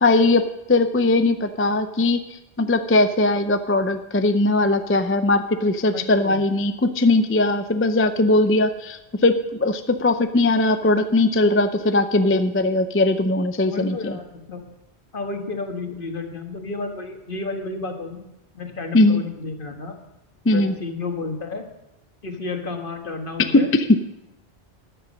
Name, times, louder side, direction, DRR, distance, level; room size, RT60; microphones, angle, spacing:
voice 1, 0.0-0.4 0.7-2.2 2.6-14.2 18.9-19.2 20.5-20.7 23.5-23.6 23.9-24.0, left 2 dB, 20° left, 9 dB, 0.4 m, -19 dB
voice 2, 5.9-6.4 13.7-14.6 15.1-18.2 18.5-19.9 20.5-21.6 22.2-23.7, left 3 dB, 55° left, 4 dB, 1.6 m, -31 dB
13.5 x 10.0 x 5.2 m, 0.89 s
omnidirectional pair, 1.1 m